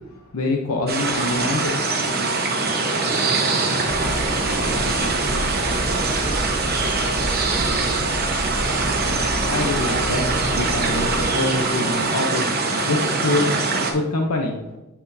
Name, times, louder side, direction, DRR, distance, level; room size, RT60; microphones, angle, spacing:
voice 1, 0.1-1.7 9.4-12.5 12.8-13.5 13.9-14.7, left 2 dB, 85° left, 1 dB, 0.8 m, -25 dB
sound 1, 0.9-13.9, right 3 dB, 45° right, 1.1 m, -23 dB
voice 2, 3.0-8.8, left 1 dB, 50° left, -3 dB, 2.3 m, -39 dB
sound 2, 3.9-11.3, equal, 10° right, 0.5 m, -30 dB
11.0 x 4.4 x 2.7 m, 1.0 s
head